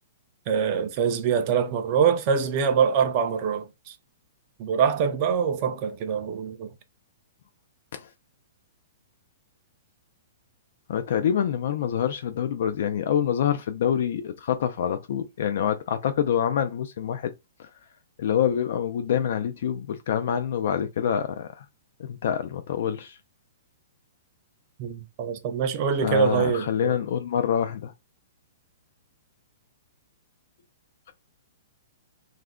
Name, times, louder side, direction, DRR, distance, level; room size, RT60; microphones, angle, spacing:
voice 1, 0.5-4.0 4.6-6.7 24.8-27.0, right 7 dB, 30° right, 0.4 m, -24 dB
voice 2, 10.9-17.3 17.6-17.7 18.2-21.6 22.0-23.2 26.0-27.9, left 9 dB, 55° left, 0.3 m, -26 dB
2.4 x 2.1 x 3.4 m
hypercardioid pair, 170°, 0 cm